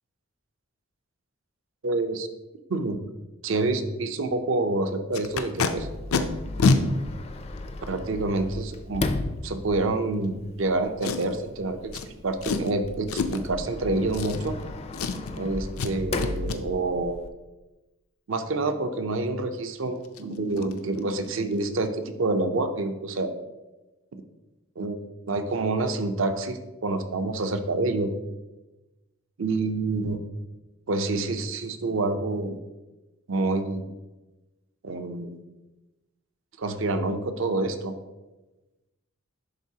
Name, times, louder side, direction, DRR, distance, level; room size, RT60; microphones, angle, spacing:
voice 1, 1.8-2.3 2.7-3.0 3.4-5.9 7.9-9.1 9.4-11.8 12.2-14.6 15.4-17.2 18.3-23.3 24.1-24.2 24.8-28.1 29.4-30.2 30.9-32.6 33.3-33.8 34.8-35.4 36.6-37.9, right 2 dB, 65° right, 8 dB, 0.6 m, -27 dB
Packing tape duct tape, 5.1-5.7 6.1-6.2 6.6-6.8 7.6-7.7 11.0-11.4 11.9-12.1 12.4-12.7 13.1-13.5 14.1-14.7 14.9-15.4 15.8-15.9 16.2-16.6 19.6-19.7 20.0-20.2 20.6-20.7 21.0-21.3 21.5-21.6, left 4 dB, 90° left, 0.5 m, -26 dB
Sliding door, 5.8-17.3, left 2 dB, 30° left, 0.4 m, -36 dB
11.0 x 3.8 x 2.8 m, 1.1 s
head